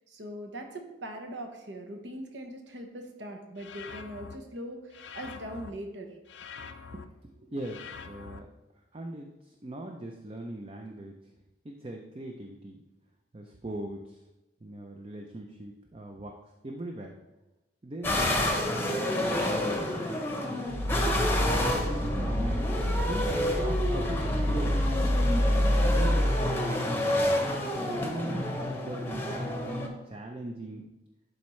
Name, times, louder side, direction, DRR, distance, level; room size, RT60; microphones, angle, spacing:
voice 1, 0.1-6.2, right 1 dB, 75° right, 4 dB, 1.1 m, -41 dB
sound 1, 3.6-4.4 4.9-5.7 6.3-7.0 7.6-8.4, left 5 dB, 70° left, 0.5 m, -44 dB
voice 2, 6.9-8.5 8.9-11.2 11.6-12.8 13.3-14.2 14.6-16.3 16.6-17.2 17.8-19.1 19.4-19.8 20.5-20.7 21.5-22.6 23.1-23.3 23.6-24.8 25.2-27.3 28.0-30.9, right 1 dB, 30° right, 2 dB, 0.5 m, -40 dB
sound 2, 18.0-29.9, left 1 dB, 10° left, 0.8 m, -29 dB
sound 3, 20.7-26.4, equal, 55° right, 0.8 m, -27 dB
11.5 x 4.2 x 3.2 m, 1.0 s
head